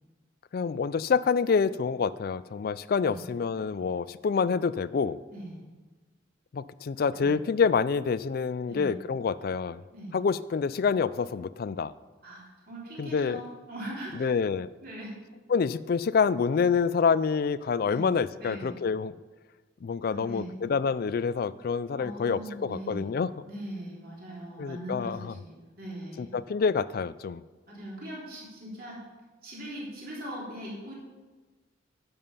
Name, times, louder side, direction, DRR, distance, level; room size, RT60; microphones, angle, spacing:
voice 1, 0.5-5.2 6.5-9.8 10.1-11.9 13.0-13.4 14.1-14.7 15.5-19.2 19.8-23.3 24.6-25.3 26.2-27.4, left 5 dB, 50° left, 18 dB, 0.3 m, -27 dB
voice 2, 12.2-14.3 14.8-15.1 17.8-18.0 18.4-18.7 20.1-20.5 22.0-23.1 23.5-26.4 27.7-29.0 29.4-30.9, right 1 dB, 45° right, -5 dB, 3.5 m, -40 dB
11.0 x 7.1 x 5.6 m, 1.3 s
head